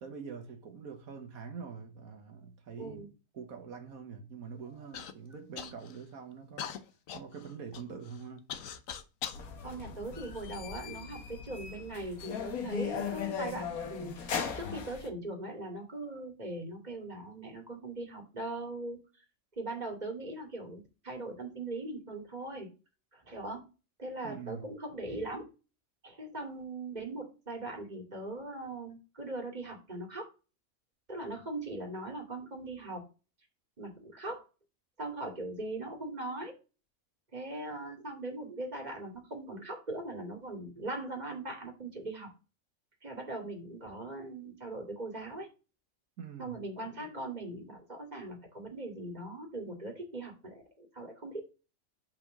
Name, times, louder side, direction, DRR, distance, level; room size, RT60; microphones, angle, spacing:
voice 1, 0.0-6.7 7.1-8.5 24.2-24.7 46.2-46.6, right 6 dB, 80° right, 1.6 m, -45 dB
voice 2, 2.8-3.1 9.6-19.0 19.6-22.7 23.1-23.6 24.0-25.5 26.0-30.3 31.1-33.0 33.8-34.4 35.0-36.5 37.3-42.3 43.0-45.5 46.4-51.4, right 2 dB, 30° right, 2.6 m, -40 dB
Human voice / Cough, 4.9-5.1 5.5-6.0 6.6-9.4 10.1-11.0 11.7-11.8 12.5-12.9, left 8 dB, 70° left, 1.2 m, -42 dB
sound 1, 9.3-15.1, left 6 dB, 85° left, 1.6 m, -38 dB
5.5 x 4.6 x 6.3 m
omnidirectional pair, 1.5 m